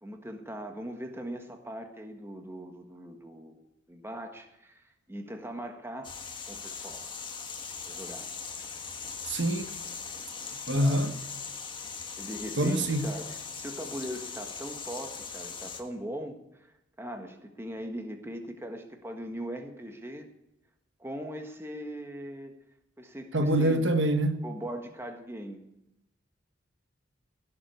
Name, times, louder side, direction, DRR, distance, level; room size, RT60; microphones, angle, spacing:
voice 1, 0.0-6.2 6.5-7.1 7.8-8.3 10.8-11.0 12.2-16.7 17.0-20.3 21.0-22.5 23.0-23.9 24.4-25.6, equal, 15° right, 1.5 m, -40 dB
sound 1, 6.0-15.8, left 5 dB, 25° left, 1.6 m, -40 dB
voice 2, 9.3-9.7 10.7-11.1 12.6-13.1 23.3-24.4, right 1 dB, 70° right, 1.3 m, -25 dB
16.5 x 7.5 x 8.2 m
head